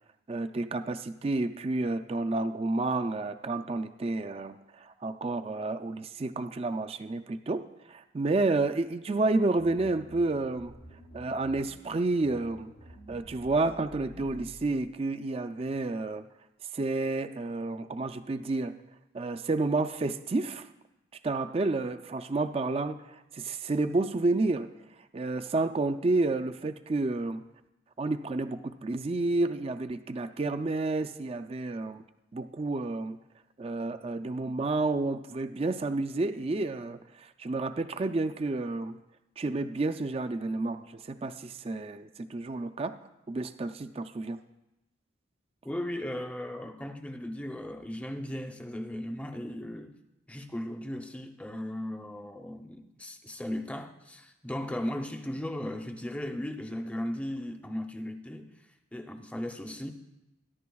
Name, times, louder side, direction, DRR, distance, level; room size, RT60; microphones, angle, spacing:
voice 1, 0.3-10.8 11.1-12.7 13.1-16.2 16.7-18.7 19.1-20.7 21.2-24.7 25.1-27.4 28.0-32.0 32.3-33.2 33.6-39.0 39.4-43.0 43.3-44.4, right 2 dB, 30° right, 0.4 m, -30 dB
sound 1, 9.6-14.9, equal, 90° left, 4.2 m, -50 dB
voice 2, 45.6-50.0 50.3-58.5 58.9-59.9, left 1 dB, 5° left, 0.7 m, -37 dB
22.0 x 11.0 x 2.3 m
head